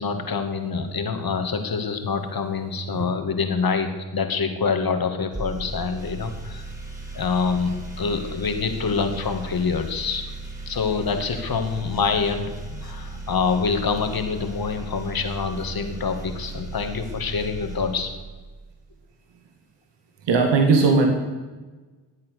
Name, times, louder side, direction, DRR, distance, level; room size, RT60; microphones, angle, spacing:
voice 1, 0.0-6.7 7.1-10.3 10.7-18.1, left 5 dB, 50° left, 6 dB, 2.5 m, -26 dB
sound 1, 5.3-18.7, right 3 dB, 20° right, 4.6 m, -36 dB
voice 2, 20.3-21.1, right 4 dB, 70° right, 3 dB, 2.1 m, -18 dB
19.5 x 8.5 x 6.7 m, 1.3 s
supercardioid pair, 50°, 45 cm